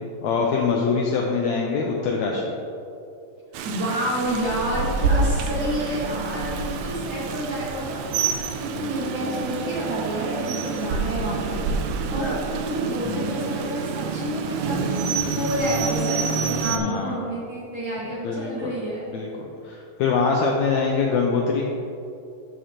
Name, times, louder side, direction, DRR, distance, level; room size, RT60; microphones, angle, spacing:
voice 1, 0.2-2.4 13.1-13.5 16.6-17.2 18.2-18.7 19.1-19.3 19.6-21.7, left 5 dB, 85° left, 0 dB, 1.6 m, -24 dB
Rain, 3.5-16.8, right 4 dB, 80° right, 1.8 m, -27 dB
voice 2, 3.6-8.3 8.6-11.6 12.1-14.9 15.2-19.1, right 1 dB, 45° right, -7 dB, 2.0 m, -29 dB
12.5 x 6.4 x 2.9 m, 2.7 s
omnidirectional pair, 3.8 m